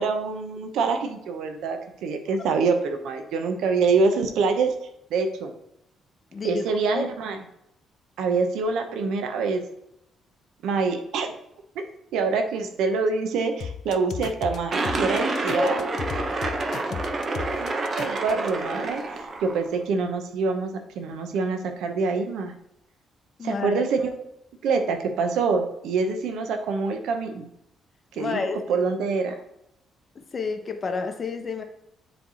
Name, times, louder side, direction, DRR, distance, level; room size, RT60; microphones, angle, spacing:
voice 1, 0.0-4.7 5.1-5.5 6.4-7.4 8.2-9.6 10.6-11.3 11.7-11.8 12.1-15.9 17.2-20.7 21.0-22.5 23.4-24.1 24.6-27.5 28.1-29.4, right 4 dB, 85° right, 6 dB, 0.8 m, -25 dB
voice 2, 6.3-6.6 6.9-7.1 15.6-16.0 16.9-17.0 23.4-23.8 28.2-28.6 30.1-31.6, left 4 dB, 40° left, 7 dB, 0.9 m, -29 dB
sound 1, 13.6-18.5, left 7 dB, 60° left, 0.4 m, -35 dB
sound 2, 14.7-19.7, right 2 dB, 45° right, 0.9 m, -28 dB
7.5 x 3.4 x 4.1 m, 0.80 s
cardioid pair, 90°, 0 cm